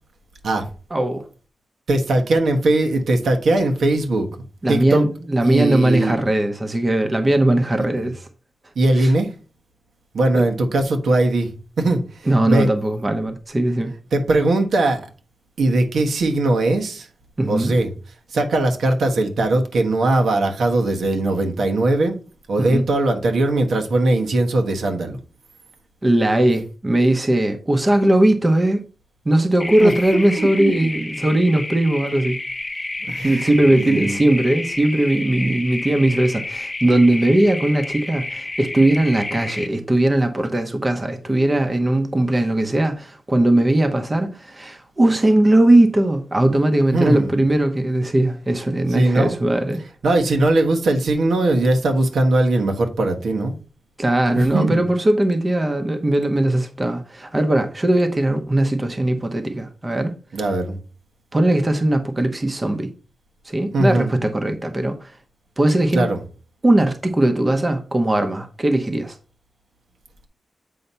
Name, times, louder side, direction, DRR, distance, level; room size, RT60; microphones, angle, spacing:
voice 1, 0.9-1.3 4.6-8.3 9.0-9.1 10.3-10.4 12.3-13.9 17.4-17.7 22.6-22.8 26.0-28.8 29.2-32.4 33.2-49.8 54.0-60.1 61.3-62.9 63.5-65.1 65.6-66.0 66.6-69.2, right 1 dB, 25° right, 0.8 m, -19 dB
voice 2, 1.9-4.3 4.7-5.0 5.4-6.2 8.7-9.3 10.1-11.5 11.8-12.7 14.1-15.1 15.6-17.1 17.5-17.9 18.3-22.2 22.5-25.2 29.8-29.9 30.4-30.9 33.1-33.5 33.7-34.2 35.4-35.5 46.9-47.4 48.9-49.4 50.0-53.5 54.4-54.8 60.3-60.8 63.7-64.1 65.9-66.2, right 2 dB, 80° right, 1.2 m, -20 dB
sound 1, 29.6-39.7, left 2 dB, 20° left, 0.5 m, -30 dB
7.9 x 2.8 x 5.5 m
wide cardioid pair, 125°, 0 cm